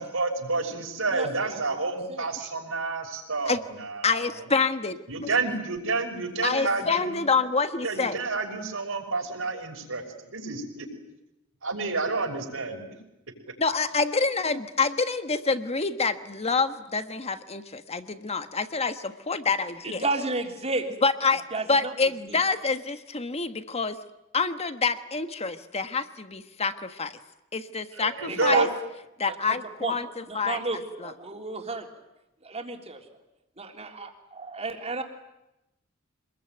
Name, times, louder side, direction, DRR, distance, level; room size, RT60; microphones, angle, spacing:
voice 1, 0.0-4.5 5.1-7.3 7.8-11.0 11.6-12.8 27.9-28.7, right 3 dB, 75° right, 2 dB, 5.9 m, -29 dB
voice 2, 1.1-2.3 19.8-20.9 21.5-21.9 22.3-22.4 28.3-28.6 29.3-30.0 30.3-31.8 32.4-33.0 33.6-35.0, right 3 dB, 30° right, 3 dB, 3.5 m, -32 dB
voice 3, 4.0-5.0 6.4-8.2 13.6-20.0 21.0-21.4 21.7-24.0 24.3-27.1 27.5-28.7 29.2-30.6 31.0-31.1, left 4 dB, 30° left, 10 dB, 1.4 m, -27 dB
26.5 x 21.0 x 9.3 m, 0.90 s
head